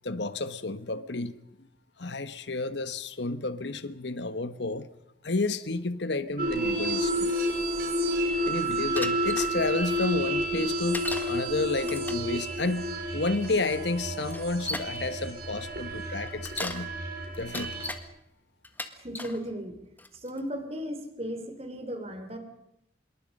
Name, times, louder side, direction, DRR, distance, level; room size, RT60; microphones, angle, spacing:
voice 1, 0.0-1.4 2.0-4.9 5.2-7.3 8.5-12.9 13.1-16.9 17.4-17.8, left 3 dB, 75° left, 1.2 m, -31 dB
sound 1, 6.4-17.9, equal, 55° right, 5.5 m, -30 dB
Bicycle, 9.0-9.5 10.9-11.3 11.8-12.3 13.4-13.5 14.3-15.0 16.3-16.9 17.3-18.0 18.6-19.4 20.0-20.4, left 2 dB, 10° left, 1.4 m, -36 dB
voice 2, 19.0-19.8 20.1-22.4, equal, 35° right, 3.4 m, -36 dB
26.5 x 22.0 x 5.4 m
head